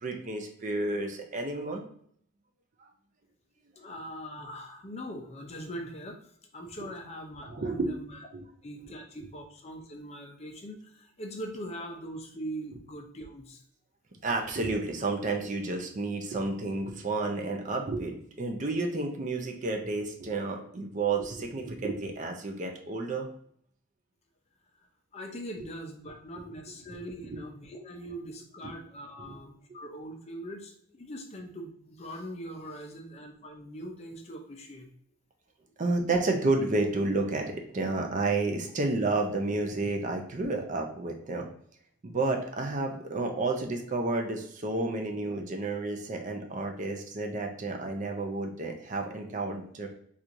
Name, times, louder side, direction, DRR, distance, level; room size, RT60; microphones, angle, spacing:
voice 1, 0.0-1.8 2.8-2.9 7.5-7.9 8.3-8.4 9.2-9.3 14.2-23.3 27.3-27.4 29.2-29.4 29.7-29.8 35.8-41.5 42.0-49.9, right 3 dB, 35° right, 2 dB, 0.4 m, -31 dB
voice 2, 3.8-8.2 8.6-13.6 25.1-34.9, equal, 30° left, 3 dB, 0.5 m, -42 dB
4.4 x 2.4 x 2.5 m, 0.65 s
head